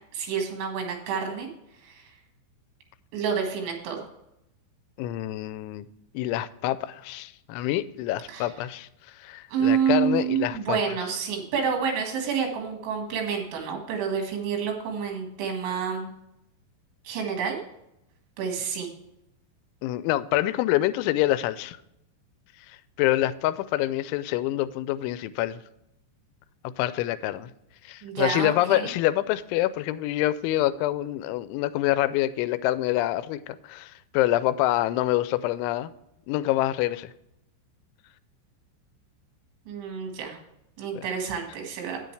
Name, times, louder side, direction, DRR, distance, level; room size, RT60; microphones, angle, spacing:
voice 1, 0.1-1.5 1.8-2.1 3.1-4.1 8.3-8.5 9.5-16.1 17.0-17.6 18.4-18.9 28.0-28.9 39.7-40.4 40.8-42.0, right 7 dB, 80° right, 2 dB, 4.3 m, -28 dB
voice 2, 5.0-5.9 6.1-8.9 9.2-10.8 19.8-21.8 23.0-25.6 26.8-27.5 27.9-35.9 36.3-37.1 41.0-41.1, left 15 dB, 90° left, 15 dB, 3.0 m, -26 dB
10.0 x 9.2 x 3.3 m, 0.84 s
omnidirectional pair, 5.3 m